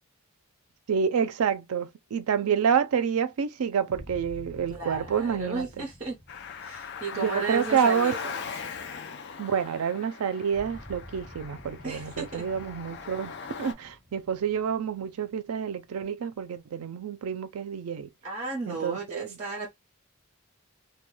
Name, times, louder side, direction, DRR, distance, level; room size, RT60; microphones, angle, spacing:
voice 1, 0.9-5.7 7.1-8.1 9.4-13.3 13.6-18.1 18.7-19.4, right 7 dB, 85° right, 0.4 m, -28 dB
sound 1, 3.9-8.9 10.5-16.2, equal, 10° left, 1.0 m, -49 dB
voice 2, 4.7-6.2 6.6-8.4 11.8-12.5 18.2-19.7, right 3 dB, 35° right, 0.8 m, -34 dB
Car, 6.3-13.7, left 6 dB, 50° left, 0.4 m, -40 dB
2.2 x 2.2 x 3.0 m
head